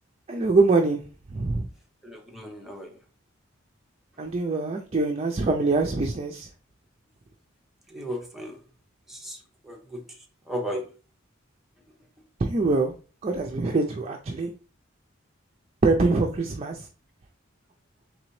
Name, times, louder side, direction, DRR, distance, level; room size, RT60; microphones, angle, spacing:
voice 1, 0.3-1.0 1.3-1.7 4.2-6.5 12.4-12.9 13.2-14.5 15.8-16.9, right 3 dB, 35° right, 3 dB, 0.4 m, -24 dB
voice 2, 2.0-3.0 7.9-8.6 9.1-9.4 9.6-10.0 10.5-10.9, equal, ahead, 1 dB, 0.8 m, -35 dB
3.9 x 3.3 x 3.1 m, 0.37 s
head